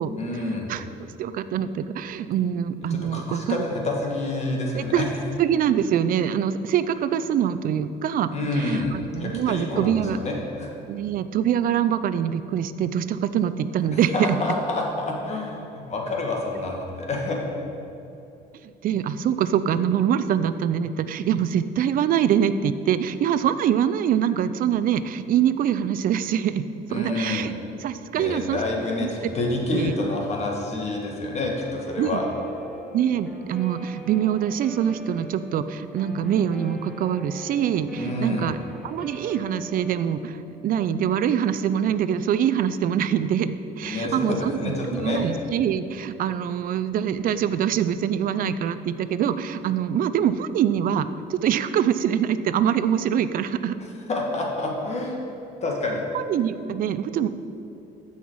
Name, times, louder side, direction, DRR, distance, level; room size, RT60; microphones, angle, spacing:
voice 1, 0.2-0.7 2.9-5.1 8.3-10.7 13.9-17.4 26.9-27.5 28.1-32.3 38.0-38.6 43.8-45.2 54.1-55.2 55.6-56.0, left 2 dB, 40° left, 0 dB, 1.7 m, -28 dB
voice 2, 0.7-3.6 4.8-5.1 5.4-8.3 8.6-10.2 10.9-14.1 18.8-26.6 26.9-27.5 27.8-28.6 29.0-29.1 29.7-29.9 32.0-32.2 32.9-38.6 38.8-44.6 44.9-53.8 56.1-57.3, right 9 dB, 55° right, 13 dB, 0.5 m, -24 dB
Guitar, 31.6-40.3, equal, ahead, 1.1 m, -42 dB
14.5 x 5.7 x 4.7 m, 2.8 s
cardioid pair, 110°, 17 cm